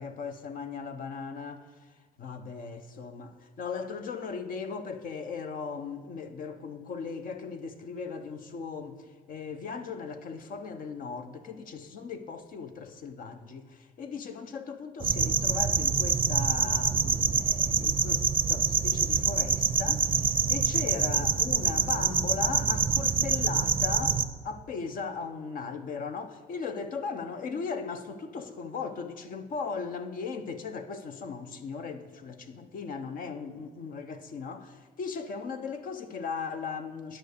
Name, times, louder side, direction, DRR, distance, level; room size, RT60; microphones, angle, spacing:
voice 1, 0.0-37.2, left 5 dB, 55° left, 0.9 m, -38 dB
sound 1, 15.0-24.2, right 6 dB, 30° right, 0.6 m, -26 dB
11.0 x 5.6 x 6.7 m
cardioid pair, 110°, 17 cm